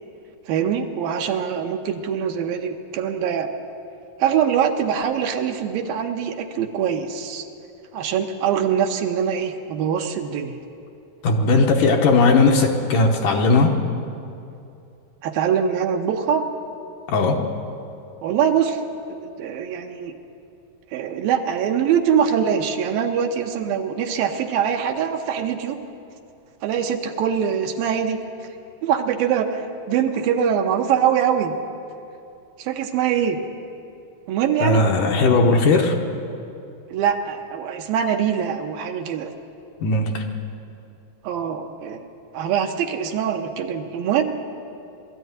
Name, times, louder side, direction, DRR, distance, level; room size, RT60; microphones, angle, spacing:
voice 1, 0.5-3.5 4.2-7.5 7.9-10.6 15.2-16.5 18.2-18.8 19.1-20.1 20.9-25.8 26.6-28.2 28.8-31.6 32.6-33.4 34.3-34.9 36.9-39.3 41.2-42.0 42.3-44.2, right 8 dB, 75° right, 4 dB, 2.6 m, -23 dB
voice 2, 11.2-13.8 17.1-17.4 34.6-36.0 39.8-40.2, left 3 dB, 65° left, 2 dB, 2.4 m, -17 dB
20.0 x 13.5 x 9.6 m, 2.6 s
omnidirectional pair, 4.4 m